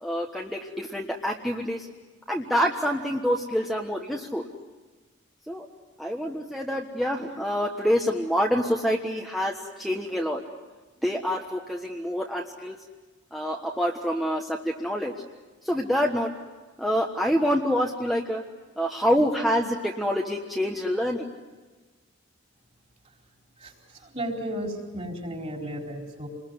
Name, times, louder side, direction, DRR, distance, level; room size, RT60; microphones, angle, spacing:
voice 1, 0.0-1.9 2.3-4.5 5.5-5.7 6.0-10.4 11.0-12.8 13.3-15.1 15.6-16.3 16.8-18.4 18.8-21.3, equal, ahead, 0 dB, 1.3 m, -26 dB
voice 2, 23.6-26.3, equal, 35° right, 1 dB, 4.5 m, -34 dB
28.0 x 21.5 x 9.6 m, 1.3 s
head